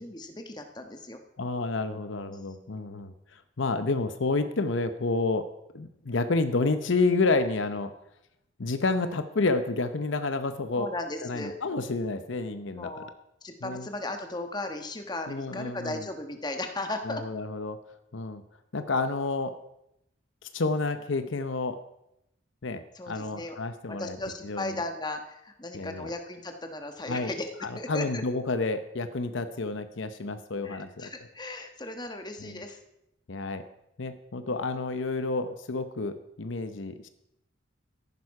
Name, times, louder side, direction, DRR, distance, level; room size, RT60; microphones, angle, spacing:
voice 1, 0.0-1.2 2.1-2.8 10.8-11.6 12.7-13.1 13.4-17.2 22.9-23.6 23.9-27.5 27.8-28.2 30.6-32.8, left 2 dB, 20° left, 5 dB, 1.2 m, -36 dB
voice 2, 1.4-5.5 5.7-7.9 8.6-10.9 11.2-12.9 13.6-13.9 15.3-16.0 17.0-17.8 18.1-18.4 18.7-19.5 20.4-21.8 22.6-24.2 24.4-24.8 25.7-26.1 27.1-27.3 27.6-31.1 32.4-32.6 33.3-33.6 34.0-37.1, left 3 dB, 65° left, 10 dB, 0.8 m, -29 dB
14.5 x 11.0 x 4.8 m, 0.82 s
head